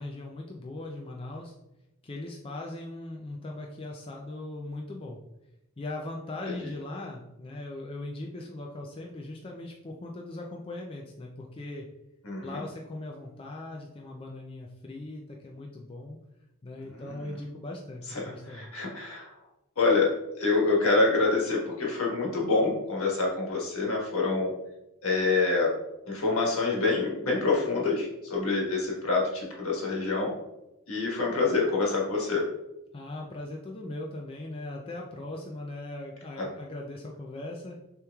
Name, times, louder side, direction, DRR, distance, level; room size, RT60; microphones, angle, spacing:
voice 1, 0.0-1.5 2.0-5.2 5.8-11.9 12.4-16.2 16.6-18.8 32.9-37.8, left 2 dB, 25° left, 0 dB, 0.4 m, -39 dB
voice 2, 12.2-12.6 16.9-17.3 18.1-19.3 19.8-20.1 20.4-24.5 25.0-25.7 26.1-30.3 30.9-32.4 36.4-36.5, left 3 dB, 75° left, -3 dB, 1.4 m, -26 dB
6.6 x 3.0 x 2.3 m, 0.90 s
head